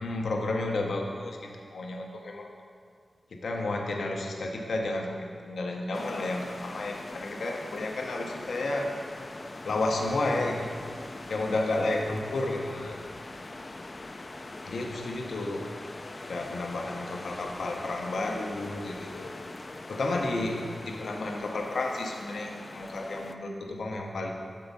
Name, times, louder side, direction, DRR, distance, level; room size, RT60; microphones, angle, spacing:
voice 1, 0.0-2.5 3.3-8.9 9.7-10.7 11.3-13.0 14.6-15.6 16.3-19.3 19.9-24.3, left 2 dB, 85° left, 1 dB, 0.7 m, -32 dB
sound 1, 5.9-23.3, left 2 dB, 40° left, 0.4 m, -42 dB
7.0 x 4.6 x 5.3 m, 2.2 s
cardioid pair, 60°, 0 cm